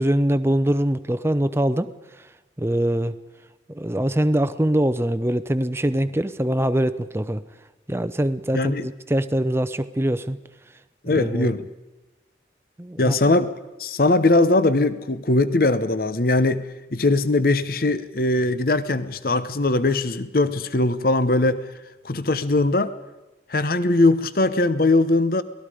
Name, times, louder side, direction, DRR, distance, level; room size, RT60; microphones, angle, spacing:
voice 1, 0.0-1.9 2.6-3.1 3.7-7.4 7.9-10.4 11.1-11.5 12.8-13.2, right 1 dB, 15° right, 12 dB, 0.7 m, -23 dB
voice 2, 8.5-8.9 11.0-11.6 13.0-13.5 13.8-16.6 16.9-21.6 22.0-22.9 23.5-25.4, left 2 dB, 55° left, 13 dB, 0.9 m, -20 dB
28.5 x 19.0 x 5.0 m, 1.1 s
head